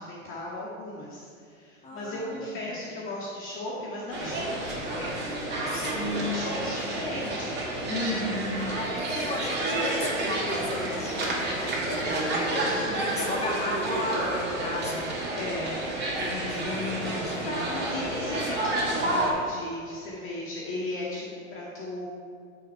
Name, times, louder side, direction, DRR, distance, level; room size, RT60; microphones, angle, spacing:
voice 1, 0.0-7.9 15.3-15.8 16.1-16.3 17.4-22.1, left 1 dB, 30° left, -5 dB, 1.8 m, -36 dB
voice 2, 1.8-2.5 4.2-4.4 5.7-6.5 7.8-15.1 16.2-17.5, left 2 dB, 15° left, -3 dB, 2.3 m, -34 dB
sound 1, 4.1-19.3, right 1 dB, 25° right, 2.6 m, -30 dB
13.0 x 6.1 x 4.6 m, 2.2 s
hypercardioid pair, 110°, 41 cm